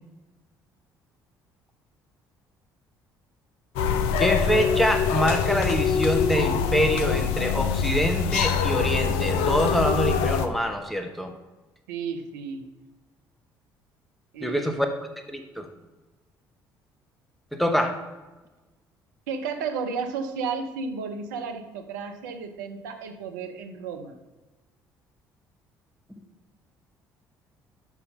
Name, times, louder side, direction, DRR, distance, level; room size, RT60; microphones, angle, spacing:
sound 1, 3.8-10.5, left 6 dB, 70° left, 0.6 m, -24 dB
voice 1, 4.2-11.3 14.4-14.9 15.3-15.7 17.5-18.0, equal, ahead, 5 dB, 1.0 m, -25 dB
voice 2, 11.9-12.7 14.3-14.8 19.3-24.1, right 5 dB, 80° right, 7 dB, 0.8 m, -33 dB
6.0 x 5.7 x 5.3 m, 1.1 s
hypercardioid pair, 55°, 10 cm